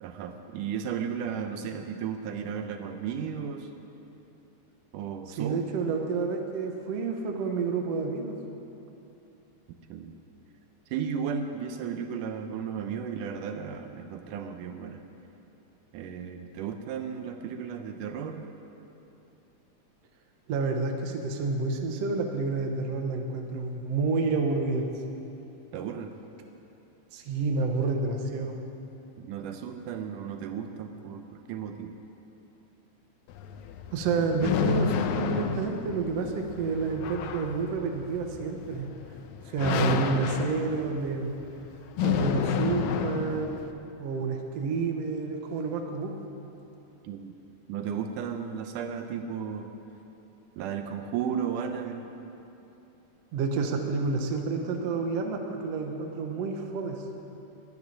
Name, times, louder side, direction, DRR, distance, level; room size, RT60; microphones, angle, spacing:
voice 1, 0.0-3.7 4.9-5.6 9.9-10.1 10.9-15.0 15.9-18.5 25.7-26.1 29.2-31.9 47.0-47.3 47.7-49.7 50.6-52.0, right 7 dB, 80° right, 6 dB, 2.3 m, -34 dB
voice 2, 5.3-8.3 20.5-24.9 27.1-28.6 33.9-38.9 39.5-41.3 42.0-43.6 44.0-46.1 53.3-57.0, right 4 dB, 60° right, 3 dB, 2.0 m, -29 dB
sound 1, 33.3-43.7, left 7 dB, 75° left, 1.9 m, -31 dB
12.0 x 10.5 x 10.0 m, 2.9 s
omnidirectional pair, 3.7 m